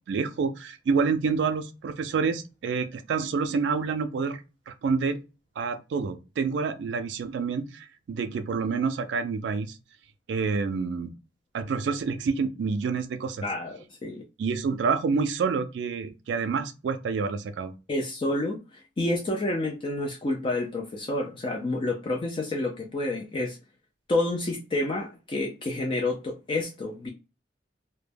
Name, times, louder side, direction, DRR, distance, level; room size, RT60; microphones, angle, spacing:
voice 1, 0.1-4.4 4.7-5.2 5.6-9.8 10.3-11.1 11.5-13.4 14.4-17.7, right 5 dB, 80° right, 0.3 m, -28 dB
voice 2, 13.4-14.2 17.9-23.6 24.1-27.1, left 2 dB, 30° left, 0.3 m, -29 dB
2.1 x 2.1 x 3.2 m
head